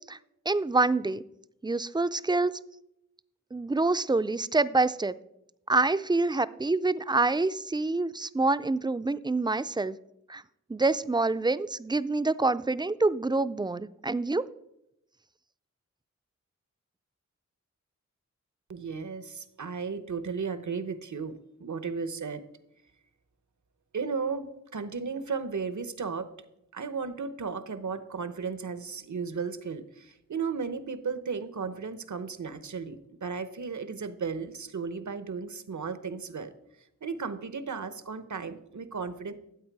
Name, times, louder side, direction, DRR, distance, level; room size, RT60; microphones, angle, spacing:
voice 1, 0.5-1.2 1.6-2.5 3.5-5.2 5.7-10.0 10.3-10.4 10.7-14.5, right 3 dB, 15° right, 14 dB, 0.4 m, -26 dB
voice 2, 18.7-22.4 23.9-26.3 26.7-36.5 37.0-39.3, right 5 dB, 80° right, 12 dB, 0.9 m, -35 dB
13.0 x 8.3 x 4.7 m, 0.82 s
wide cardioid pair, 80°, 29 cm